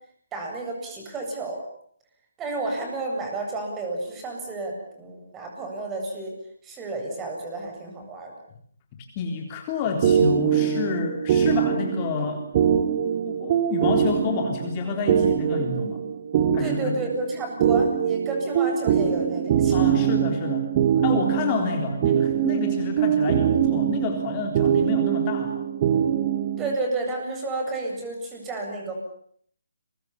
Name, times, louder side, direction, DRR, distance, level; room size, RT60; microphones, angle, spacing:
voice 1, 0.3-1.6 2.4-6.3 6.6-8.3 16.6-19.7 20.0-20.2 21.1-21.2 26.6-28.9, right 2 dB, 15° right, 2 dB, 7.9 m, -31 dB
voice 2, 8.9-12.5 13.3-16.0 16.5-16.9 19.7-20.7 21.0-25.7, left 5 dB, 25° left, 3 dB, 3.8 m, -29 dB
sound 1, 10.0-26.8, right 8 dB, 30° right, 1.9 m, -23 dB
30.0 x 23.0 x 7.2 m, 0.63 s
figure-of-eight pair, 150°, 0 cm